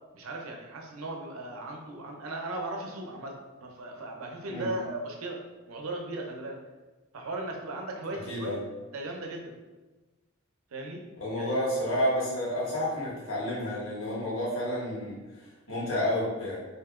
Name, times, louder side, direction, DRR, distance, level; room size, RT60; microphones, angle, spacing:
voice 1, 0.1-5.4 5.7-6.6 7.1-8.6 8.9-9.5 10.7-11.0 11.4-11.5, right 2 dB, 85° right, 1 dB, 0.6 m, -37 dB
voice 2, 8.3-8.6 11.2-16.6, equal, 80° left, -5 dB, 1.2 m, -30 dB
2.9 x 2.7 x 3.6 m, 1.2 s
head